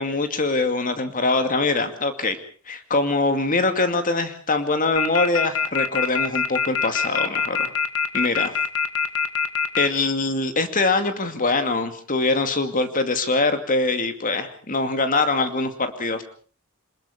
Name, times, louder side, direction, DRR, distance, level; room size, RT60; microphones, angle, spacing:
voice 1, 0.0-2.4 2.7-7.7 8.1-8.5 9.8-16.3, left 3 dB, 40° left, 8 dB, 2.4 m, -23 dB
sound 1, 5.0-9.9, left 7 dB, 85° left, 1.9 m, -23 dB
27.5 x 20.0 x 5.1 m, 0.41 s
head